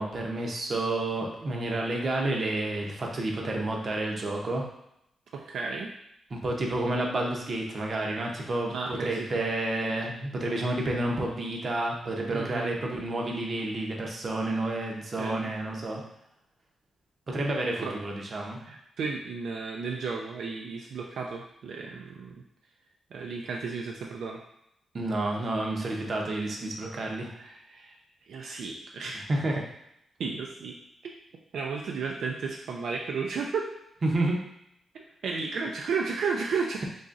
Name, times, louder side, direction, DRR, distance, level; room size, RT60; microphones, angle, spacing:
voice 1, 0.0-4.6 6.3-16.0 17.3-18.6 24.9-27.3 29.3-29.6 34.0-34.4, right 2 dB, 40° right, 0 dB, 0.6 m, -30 dB
voice 2, 5.3-5.9 8.7-9.3 12.3-12.8 15.2-15.5 17.8-18.0 18.7-22.3 23.1-24.4 27.4-27.9 28.3-29.2 30.2-30.7 31.0-31.1 31.5-33.7 35.2-36.8, right 5 dB, 75° right, 0 dB, 0.3 m, -33 dB
3.9 x 2.9 x 2.4 m, 0.77 s
wide cardioid pair, 150°, 0 cm